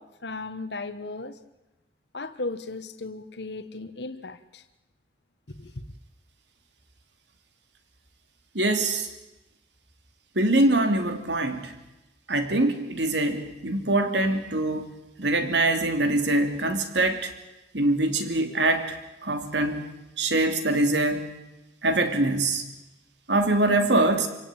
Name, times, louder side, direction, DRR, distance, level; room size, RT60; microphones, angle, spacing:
voice 1, 0.0-1.4 2.1-4.6 5.6-5.8, left 3 dB, 65° left, 1.5 m, -36 dB
voice 2, 8.5-9.1 10.3-11.7 12.3-14.9 15.2-17.3 17.7-19.0 19.2-21.3 21.8-22.6 23.3-24.3, right 2 dB, 70° right, 2.9 m, -24 dB
28.0 x 17.5 x 9.2 m
head